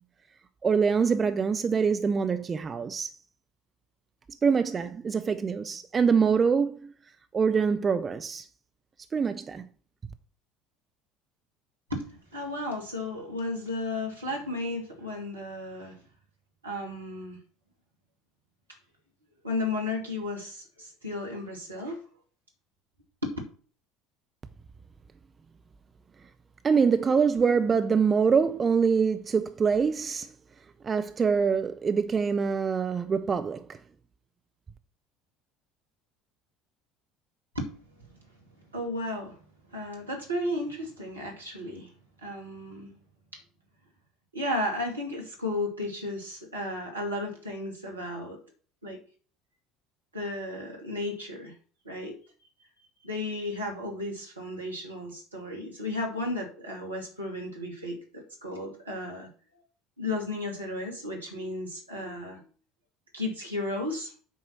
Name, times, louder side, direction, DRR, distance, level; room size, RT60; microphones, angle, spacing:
voice 1, 0.6-3.1 4.4-6.9 7.3-8.4 9.1-9.7 26.6-30.3 30.8-33.8, right 6 dB, 30° right, 0.7 m, -24 dB
voice 2, 11.9-16.0 16.6-17.4 19.4-22.1 23.2-23.3 37.5-37.7 38.7-39.4 39.7-41.9 42.2-42.9 44.3-48.4 48.8-49.0 50.1-51.5 51.8-52.2 53.0-59.3 60.0-62.4 63.1-64.1, left 2 dB, 85° right, 2.2 m, -34 dB
8.3 x 4.7 x 6.1 m
figure-of-eight pair, 65°, 0 cm